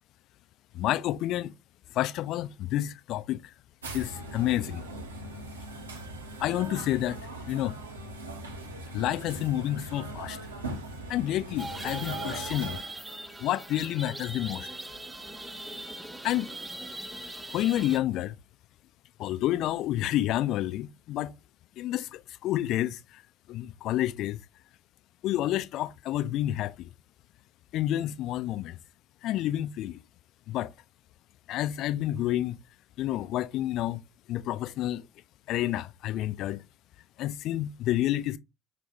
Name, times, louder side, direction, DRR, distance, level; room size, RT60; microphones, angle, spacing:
voice 1, 0.7-1.5 1.9-3.5 3.9-4.8 6.4-7.2 7.5-7.8 8.9-10.4 11.1-12.8 13.4-14.7 16.2-16.5 17.5-18.4 19.2-21.3 21.8-23.2 23.5-24.4 25.2-26.9 27.7-28.8 29.2-30.0 30.5-30.7 31.5-32.6 33.0-34.0 34.3-35.0 35.5-36.6 37.2-38.4, left 13 dB, 50° left, 0.4 m, -29 dB
sound 1, 3.8-12.8, right 1 dB, 80° right, 0.8 m, -40 dB
sound 2, 11.6-18.0, right 2 dB, 10° right, 0.6 m, -40 dB
5.9 x 2.3 x 2.6 m
figure-of-eight pair, 60°, 0 cm